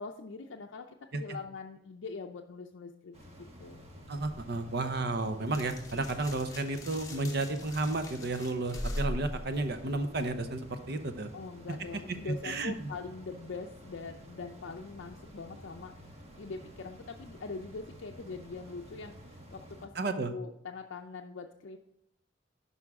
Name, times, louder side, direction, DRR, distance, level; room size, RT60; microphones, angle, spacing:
voice 1, 0.0-3.8 11.3-21.8, left 4 dB, 70° left, 3 dB, 0.5 m, -43 dB
sound 1, 3.1-19.9, equal, 35° right, 1.2 m, -51 dB
voice 2, 4.1-11.3 12.3-12.7 20.0-20.3, right 2 dB, 60° right, 9 dB, 0.8 m, -32 dB
sound 2, 4.2-10.5, left 1 dB, 20° left, 1.1 m, -41 dB
11.0 x 5.5 x 3.6 m, 0.77 s
head